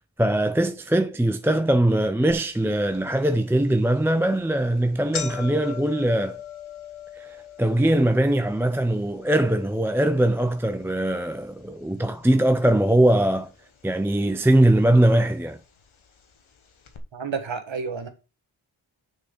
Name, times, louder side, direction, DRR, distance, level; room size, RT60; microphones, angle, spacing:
voice 1, 0.2-6.4 7.2-13.5 13.8-15.6, right 1 dB, 5° right, 0.5 m, -21 dB
sound 1, 2.3-2.4 2.9-3.0 3.9-4.1 4.4-4.5 4.8-13.0 13.2-14.0 14.8-14.9 15.8-15.9 16.2-16.3 16.9-17.0, left 8 dB, 85° left, 1.1 m, -40 dB
voice 2, 17.1-18.1, right 5 dB, 75° right, 1.3 m, -30 dB
6.3 x 3.8 x 5.1 m
cardioid pair, 40°, 47 cm